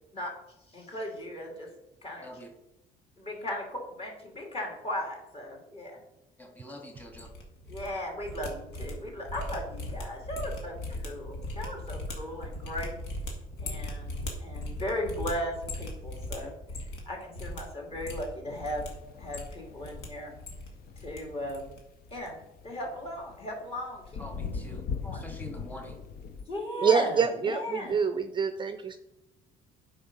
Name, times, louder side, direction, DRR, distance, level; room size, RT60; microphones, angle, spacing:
voice 1, 0.7-1.7 2.0-2.3 3.2-6.0 7.7-12.9 13.6-16.5 17.0-18.9 19.2-20.3 21.0-21.8 22.1-24.2 25.0-25.2 26.5-27.9, left 1 dB, 35° left, 0 dB, 2.9 m, -37 dB
voice 2, 2.2-2.5 6.4-7.3 24.2-26.1, equal, 10° left, 2 dB, 1.8 m, -45 dB
sound 1, 7.0-7.9 8.1-17.1 17.3-17.6 17.9-18.9 19.2-20.1 20.3-21.2 21.5-21.8 22.0-22.3, left 1 dB, 80° left, 2.1 m, -38 dB
sound 2, 18.5-26.4, left 6 dB, 65° left, 0.8 m, -41 dB
voice 3, 26.8-29.0, right 5 dB, 30° right, 9 dB, 0.5 m, -26 dB
8.6 x 5.2 x 5.5 m, 0.91 s
cardioid pair, 110°, 17 cm